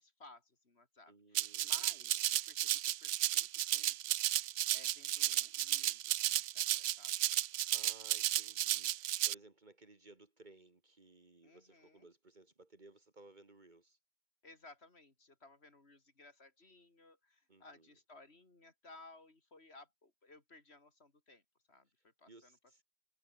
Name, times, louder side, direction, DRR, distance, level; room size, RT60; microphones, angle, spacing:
voice 1, 0.0-4.4 4.7-7.1 11.4-12.1 14.4-21.4 21.7-22.6, left 2 dB, 55° left, 3.4 m, -60 dB
voice 2, 1.1-2.2 7.7-14.0 17.5-17.9 22.3-22.8, right 2 dB, 35° right, 2.0 m, -60 dB
Rattle (instrument), 1.3-9.3, right 14 dB, 75° right, 0.9 m, -34 dB
omnidirectional pair, 1.3 m